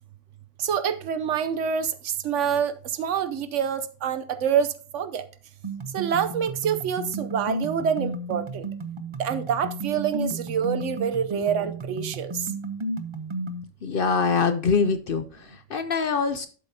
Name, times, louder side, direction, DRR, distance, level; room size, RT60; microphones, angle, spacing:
voice 1, 0.6-1.9 2.2-2.7 3.0-5.2 5.9-8.6 9.2-12.4, right 7 dB, 70° right, 1.0 m, -26 dB
sound 1, 5.6-13.6, right 2 dB, 35° right, 0.6 m, -33 dB
voice 2, 13.8-16.5, left 5 dB, 55° left, 0.7 m, -24 dB
11.5 x 7.5 x 2.7 m
omnidirectional pair, 1.3 m